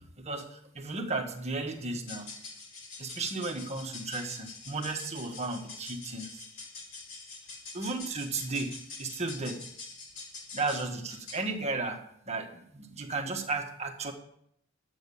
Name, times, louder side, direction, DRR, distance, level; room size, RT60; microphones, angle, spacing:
voice 1, 0.0-2.3 3.0-6.4 7.7-9.6 10.5-14.1, right 3 dB, 30° right, 4 dB, 1.4 m, -34 dB
sound 1, 2.0-11.5, left 3 dB, 65° left, 4.5 m, -45 dB
11.5 x 8.7 x 7.0 m, 0.70 s
head